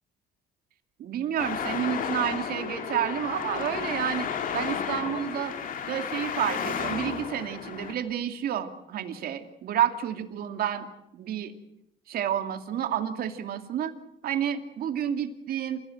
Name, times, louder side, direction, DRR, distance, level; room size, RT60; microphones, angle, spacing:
voice 1, 1.0-5.5 5.8-10.9 11.1-11.5 12.1-13.9 14.2-15.8, right 10 dB, 65° right, 7 dB, 2.6 m, -30 dB
Traffic noise roadway noise, 1.4-7.9, left 7 dB, 55° left, 2.8 m, -32 dB
27.5 x 16.5 x 7.9 m, 0.81 s
cardioid pair, 110°, 17 cm